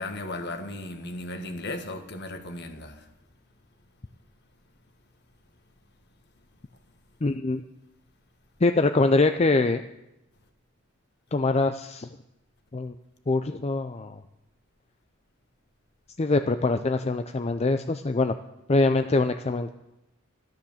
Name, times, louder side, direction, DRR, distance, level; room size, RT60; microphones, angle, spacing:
voice 1, 0.0-3.1, left 2 dB, 55° left, 1.6 m, -36 dB
voice 2, 7.2-7.6 8.6-9.8 11.3-12.1 12.7-12.9 13.3-14.2 16.2-18.3 18.7-19.7, left 3 dB, 30° left, 0.5 m, -23 dB
13.0 x 12.0 x 7.2 m
head